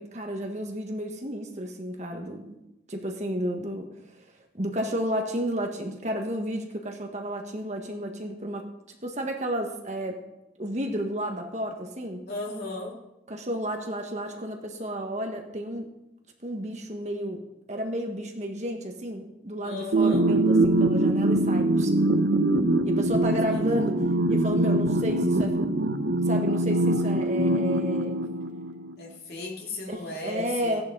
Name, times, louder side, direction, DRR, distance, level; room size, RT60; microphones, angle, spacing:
voice 1, 0.0-2.6 2.9-3.9 4.5-10.2 10.6-12.2 13.3-15.9 16.4-21.9 22.8-25.6 26.3-28.2 29.9-30.8, equal, 40° right, 3 dB, 1.5 m, -32 dB
voice 2, 12.3-13.0 19.6-20.3 23.2-23.8 29.0-30.8, left 2 dB, 60° left, -2 dB, 2.8 m, -36 dB
sound 1, 19.9-28.9, right 1 dB, 85° right, 0.9 m, -23 dB
16.0 x 10.5 x 4.0 m, 0.92 s
head